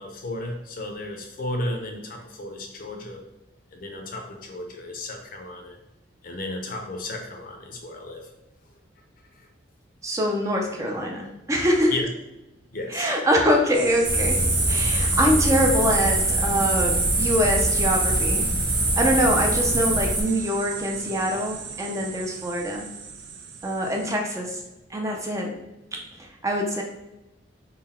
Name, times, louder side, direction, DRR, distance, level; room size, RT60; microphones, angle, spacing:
voice 1, 0.0-3.2 3.7-5.8 6.2-8.3 11.9-12.1 12.7-13.1, left 2 dB, 50° left, 3 dB, 0.6 m, -33 dB
voice 2, 10.0-11.9 12.9-14.4 14.7-18.5 19.0-22.9 23.6-24.6 24.9-25.5 25.9-26.8, equal, 15° right, 0 dB, 0.4 m, -24 dB
sound 1, 13.7-24.2, right 6 dB, 75° right, 0.5 m, -35 dB
sound 2, 14.0-20.2, right 1 dB, 55° right, 1.2 m, -23 dB
3.8 x 2.2 x 4.1 m, 0.95 s
head